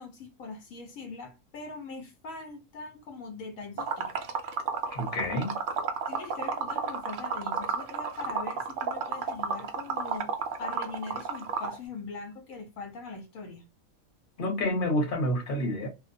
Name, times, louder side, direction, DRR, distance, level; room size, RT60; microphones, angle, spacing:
voice 1, 0.0-4.4 6.1-10.3 10.6-13.7, left 4 dB, 75° left, 1.1 m, -41 dB
Liquid, 3.8-11.8, right 6 dB, 85° right, 0.4 m, -31 dB
voice 2, 4.9-5.6 14.4-15.9, left 1 dB, 45° left, 1.0 m, -28 dB
2.4 x 2.1 x 2.5 m
omnidirectional pair, 1.5 m